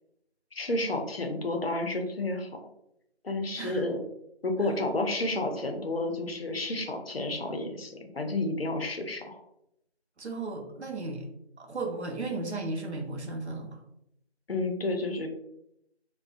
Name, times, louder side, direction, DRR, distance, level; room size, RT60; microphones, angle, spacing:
voice 1, 0.5-2.5 3.2-4.0 4.4-9.4 14.5-15.3, left 2 dB, 65° left, 4 dB, 0.5 m, -31 dB
voice 2, 3.6-3.9 10.2-11.2 11.6-13.7, right 3 dB, 80° right, 2 dB, 0.7 m, -35 dB
2.5 x 2.1 x 2.4 m, 0.79 s
figure-of-eight pair, 175°, 33 cm